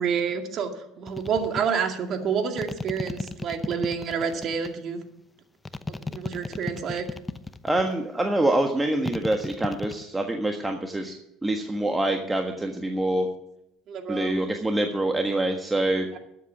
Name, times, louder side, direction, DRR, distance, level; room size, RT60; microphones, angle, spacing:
voice 1, 0.0-5.0 5.9-7.1 13.9-14.3, right 6 dB, 50° right, 5 dB, 2.3 m, -28 dB
sound 1, 1.1-1.7 2.6-4.7 5.7-7.9 9.1-10.0, left 3 dB, 15° left, 0.7 m, -33 dB
voice 2, 7.6-11.2 11.4-13.3 14.1-16.1, right 1 dB, 15° right, 4 dB, 1.5 m, -25 dB
12.5 x 8.3 x 7.1 m, 0.81 s
hypercardioid pair, 80°, 0 cm